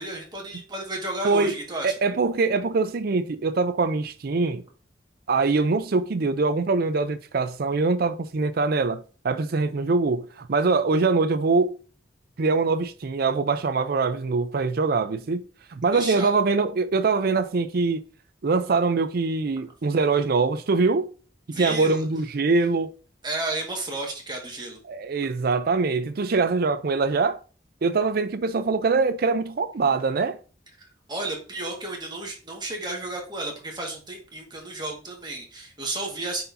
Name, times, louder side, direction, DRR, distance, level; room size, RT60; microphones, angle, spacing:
voice 1, 0.0-1.9 15.9-16.3 21.5-22.0 23.2-24.8 31.1-36.4, right 2 dB, 25° right, 1.7 m, -32 dB
voice 2, 1.8-4.6 5.3-11.8 12.4-15.4 15.7-18.0 18.4-21.1 21.6-22.9 24.9-27.4 27.8-30.4, right 4 dB, 60° right, 0.5 m, -23 dB
9.4 x 4.3 x 2.7 m
head